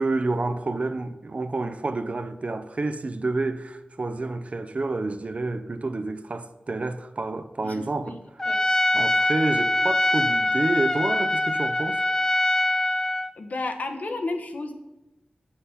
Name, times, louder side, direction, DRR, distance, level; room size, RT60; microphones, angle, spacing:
voice 1, 0.0-8.2 8.9-12.0, right 3 dB, 55° right, 0.6 m, -29 dB
voice 2, 7.6-8.2 8.5-8.7 13.4-14.7, left 2 dB, 70° left, 1.1 m, -32 dB
Trumpet, 8.4-13.3, left 1 dB, 25° left, 0.6 m, -23 dB
8.2 x 5.8 x 5.7 m
wide cardioid pair, 55°, 3 cm